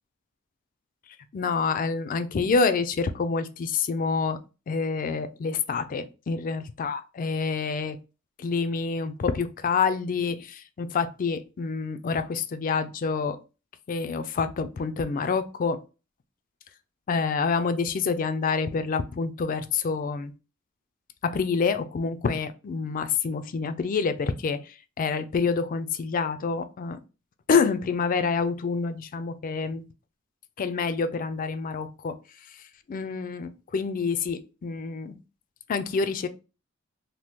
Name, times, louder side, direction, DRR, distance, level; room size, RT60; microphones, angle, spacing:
voice 1, 1.3-4.4 4.7-8.0 8.4-13.4 13.9-15.8 17.1-20.3 21.2-24.6 25.0-27.0 27.5-29.8 30.6-32.2 32.9-35.2 35.7-36.3, left 5 dB, 40° left, 0.3 m, -27 dB
2.9 x 2.2 x 3.4 m
head